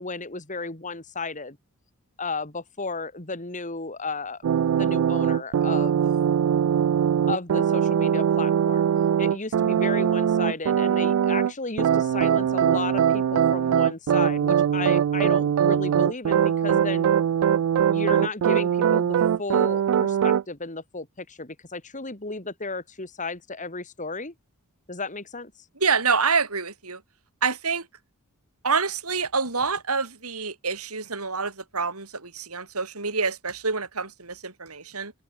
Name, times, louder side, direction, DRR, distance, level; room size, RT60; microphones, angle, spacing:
voice 1, 0.0-1.6 2.2-4.4 4.7-6.0 7.3-8.9 9.2-17.1 17.8-24.3 24.9-25.5, left 3 dB, 35° left, 3.4 m, -33 dB
sound 1, 4.4-11.5 11.8-20.4, right 8 dB, 65° right, 0.3 m, -22 dB
voice 2, 25.8-27.0 27.4-27.9 28.6-35.1, right 5 dB, 85° right, 4.7 m, -27 dB
open air
head